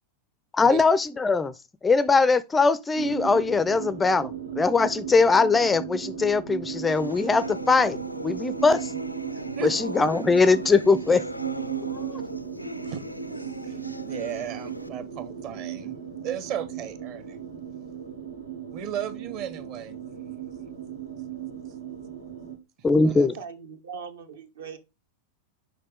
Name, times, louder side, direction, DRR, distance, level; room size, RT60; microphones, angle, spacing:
voice 1, 0.5-1.5 1.8-8.0 8.2-9.0 9.6-11.2 12.0-12.2 22.8-23.4, left 4 dB, 15° left, 0.4 m, -21 dB
sound 1, 3.0-22.6, right 9 dB, 85° right, 1.6 m, -36 dB
sound 2, 6.9-14.9, left 1 dB, 90° left, 0.5 m, -38 dB
voice 2, 13.6-17.4 18.7-19.9 23.0-23.3, right 10 dB, 40° right, 1.1 m, -35 dB
voice 3, 23.2-24.8, right 6 dB, 65° right, 1.0 m, -40 dB
6.4 x 5.2 x 3.5 m
figure-of-eight pair, 90°, 0 cm